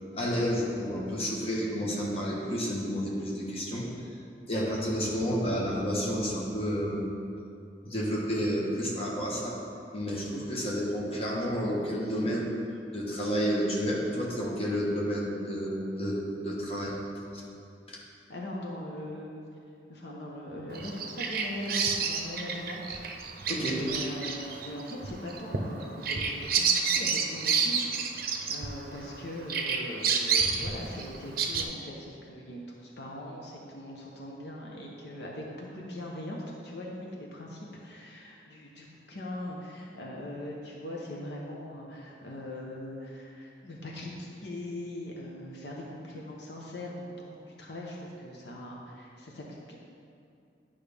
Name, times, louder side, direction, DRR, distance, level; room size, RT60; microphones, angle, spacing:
voice 1, 0.1-4.1 4.5-7.0 7.8-9.6 9.9-12.5 12.9-17.0 17.3-17.4 17.9-18.0 23.5-23.8, equal, 35° left, -4 dB, 1.3 m, -30 dB
voice 2, 18.3-19.3 19.9-23.0 23.7-49.8, left 1 dB, 75° left, -2 dB, 0.9 m, -41 dB
Bird vocalization bird call bird song, 20.7-29.2 29.5-31.6, right 5 dB, 55° right, 0.6 m, -29 dB
10.5 x 5.5 x 3.5 m, 2.5 s
head